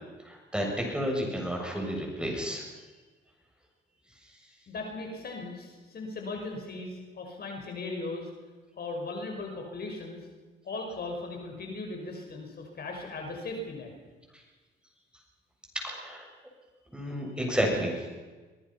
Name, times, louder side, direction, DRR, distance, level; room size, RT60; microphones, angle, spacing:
voice 1, 0.2-2.6 15.8-16.3 16.9-18.2, equal, 5° right, 0 dB, 7.3 m, -31 dB
voice 2, 4.7-8.3 8.8-10.2 10.6-13.9, left 2 dB, 50° left, 2 dB, 5.7 m, -38 dB
24.0 x 19.5 x 5.8 m, 1.3 s
cardioid pair, 90°, 20 cm